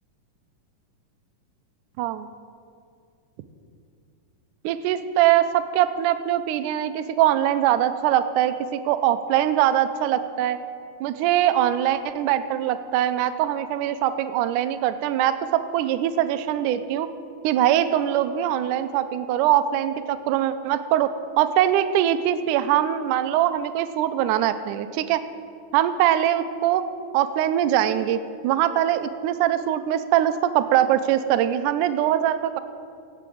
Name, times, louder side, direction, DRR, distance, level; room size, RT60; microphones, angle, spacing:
voice 1, 2.0-2.3 4.6-10.6 11.0-17.1 17.4-21.1 21.4-25.2 25.7-26.8 27.1-28.2 28.4-32.6, right 11 dB, 80° right, 11 dB, 2.0 m, -22 dB
16.5 x 6.1 x 8.5 m, 2.4 s
omnidirectional pair, 3.9 m